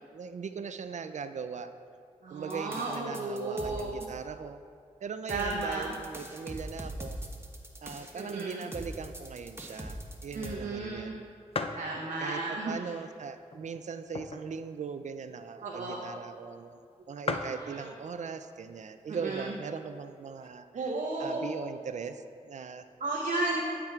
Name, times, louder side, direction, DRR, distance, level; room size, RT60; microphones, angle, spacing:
voice 1, 0.1-1.7 2.3-4.6 5.0-7.2 7.8-11.3 12.2-20.9 21.2-22.8, right 6 dB, 65° right, 10 dB, 0.4 m, -40 dB
voice 2, 2.2-4.0 5.3-5.9 8.1-8.6 10.3-11.1 11.8-12.8 15.6-16.0 17.3-17.9 19.1-19.5 20.7-21.4 23.0-23.6, right 2 dB, 80° right, -2 dB, 0.7 m, -34 dB
sound 1, 2.5-4.1 5.3-10.5, right 1 dB, 20° right, 1.0 m, -41 dB
sound 2, 11.0-11.1 11.5-11.9 12.5-12.6 13.4-14.6 15.0-15.1 15.2-15.5 16.3-16.4 16.6-16.7 16.9-17.0 17.2-17.6 18.5-18.9 19.4-19.5 19.7-20.5, left 3 dB, 45° left, 0.5 m, -36 dB
12.0 x 5.9 x 2.4 m, 2.3 s
cardioid pair, 45°, 13 cm